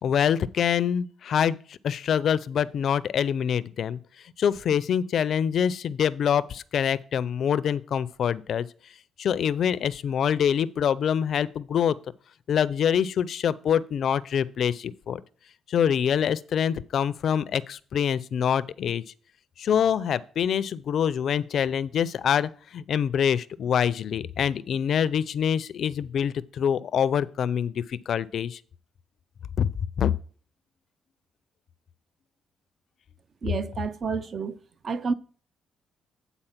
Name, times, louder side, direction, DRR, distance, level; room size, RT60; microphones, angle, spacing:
voice 1, 0.0-8.7 9.2-12.0 12.5-15.2 15.7-19.0 19.6-28.6 29.6-30.1, left 8 dB, 65° left, 0.4 m, -25 dB
voice 2, 33.4-34.6 34.8-35.1, right 5 dB, 45° right, 0.6 m, -29 dB
9.0 x 4.1 x 5.8 m
cardioid pair, 90°, 0 cm